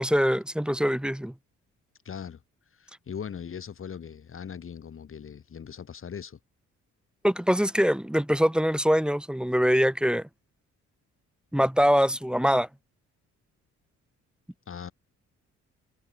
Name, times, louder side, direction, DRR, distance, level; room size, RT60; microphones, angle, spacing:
voice 1, 0.0-1.3 7.2-10.2 11.5-12.7, equal, 5° right, 1.2 m, -23 dB
voice 2, 2.1-2.4 2.7-6.4 14.7-14.9, left 7 dB, 45° left, 2.0 m, -39 dB
cardioid pair, 90°, 30 cm